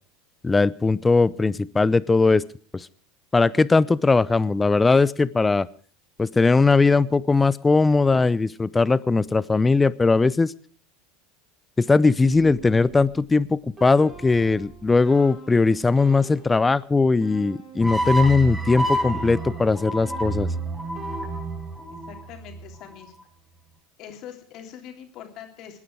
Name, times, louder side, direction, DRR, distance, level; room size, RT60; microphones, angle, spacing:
voice 1, 0.4-2.4 2.7-2.9 3.3-5.7 6.2-10.5 11.8-20.5, left 3 dB, 15° left, 19 dB, 0.7 m, -19 dB
sound 1, 12.2-18.2 18.8-22.0, right 5 dB, 30° right, 6.8 m, -44 dB
sound 2, 17.8-23.0, right 2 dB, 10° right, 4.9 m, -29 dB
voice 2, 21.9-23.1 24.0-25.8, left 9 dB, 50° left, 3 dB, 3.5 m, -43 dB
25.5 x 9.8 x 4.8 m, 0.43 s
hypercardioid pair, 85°, 0 cm